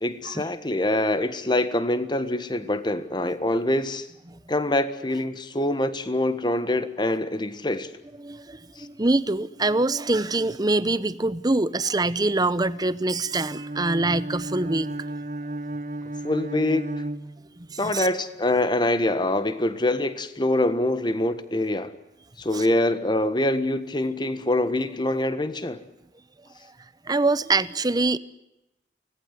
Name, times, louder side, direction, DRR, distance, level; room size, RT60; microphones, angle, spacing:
voice 1, 0.0-4.1 4.5-7.9 8.8-8.9 16.2-16.9 17.8-21.9 22.4-25.8, left 1 dB, 25° left, 12 dB, 1.5 m, -25 dB
voice 2, 8.2-14.9 17.6-18.1 22.5-22.7 27.0-28.2, right 2 dB, 20° right, 16 dB, 0.8 m, -24 dB
Bowed string instrument, 13.3-17.9, right 1 dB, 45° right, 1.0 m, -33 dB
25.0 x 18.5 x 9.3 m, 0.93 s
head